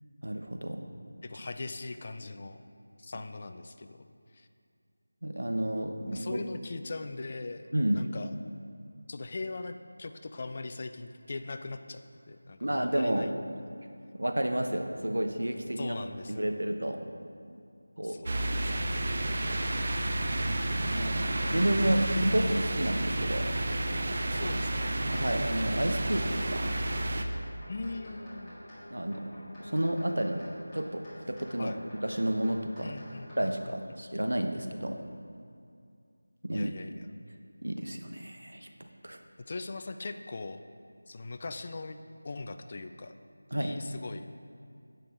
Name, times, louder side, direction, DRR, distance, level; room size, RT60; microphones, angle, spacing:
voice 1, 0.2-0.8 5.2-6.4 7.7-8.0 12.6-13.3 14.1-15.9 16.3-17.1 17.5-17.6 18.0-18.2 20.9-23.5 25.1-26.7 28.9-31.7 32.0-32.9 33.4-35.0 36.4-36.7 37.6-39.2 43.5-43.8, right 1 dB, 85° right, 5 dB, 0.9 m, -31 dB
voice 2, 1.2-2.6 3.0-4.0 4.3-4.5 6.1-8.3 9.1-12.0 12.3-13.3 15.8-16.7 18.0-18.9 24.1-24.9 27.7-28.5 31.6-31.8 32.8-33.7 36.5-37.1 39.5-40.6 41.1-42.0 42.2-43.1 43.5-44.3, left 3 dB, 35° left, 8 dB, 0.4 m, -40 dB
sound 1, 18.3-27.3, right 1 dB, 40° right, 0.5 m, -31 dB
sound 2, 19.7-33.4, left 1 dB, 15° left, 1.8 m, -49 dB
10.0 x 7.8 x 3.8 m, 2.3 s
figure-of-eight pair, 170°, 0 cm